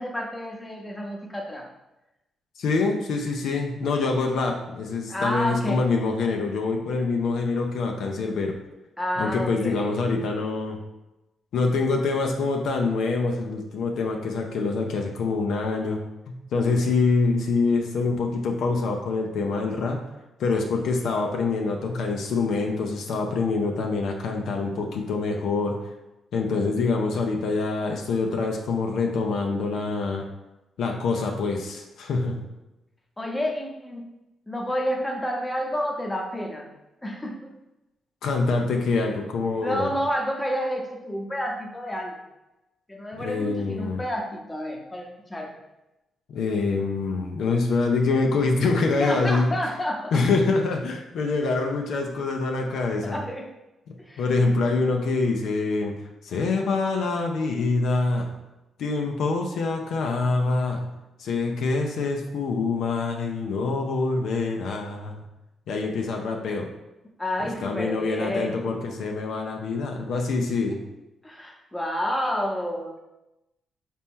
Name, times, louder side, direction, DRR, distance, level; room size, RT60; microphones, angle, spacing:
voice 1, 0.0-1.7 5.1-5.8 9.0-9.9 33.2-34.1 34.5-36.7 37.0-37.5 39.6-42.2 42.9-45.5 49.0-50.2 53.0-53.5 54.0-54.2 67.2-68.5 71.2-73.0, equal, 15° left, 0 dB, 0.9 m, -29 dB
voice 2, 2.6-8.5 9.2-10.8 11.5-16.0 16.3-20.0 20.4-25.8 26.3-30.2 30.8-32.5 38.2-39.9 43.2-44.0 46.3-49.5 50.1-53.2 54.2-55.9 56.2-58.3 58.8-60.9 61.2-65.2 65.7-66.7 67.4-70.8, left 3 dB, 75° left, 2 dB, 0.5 m, -25 dB
4.1 x 2.9 x 3.6 m, 0.97 s
cardioid pair, 70°, 0 cm